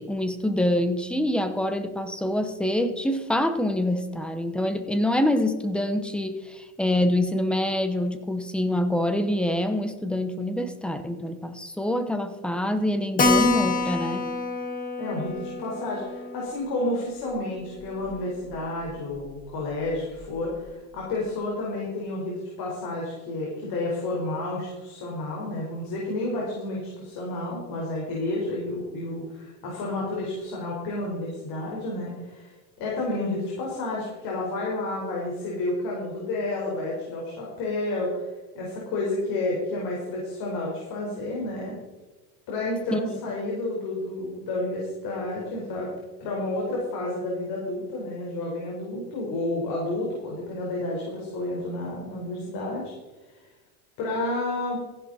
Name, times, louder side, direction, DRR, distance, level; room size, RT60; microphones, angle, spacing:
voice 1, 0.0-14.3 42.9-43.2, left 1 dB, ahead, 9 dB, 0.9 m, -26 dB
Keyboard (musical), 13.2-18.2 18.5-18.6 18.9-19.0 19.3-19.4 19.9-20.3, left 3 dB, 20° left, 1.5 m, -28 dB
voice 2, 15.0-38.2 38.5-41.7 42.5-45.9 46.2-52.9 54.0-54.8, left 2 dB, 50° left, -3 dB, 4.6 m, -30 dB
15.0 x 11.0 x 4.2 m, 1.2 s
supercardioid pair, 140°, 44 cm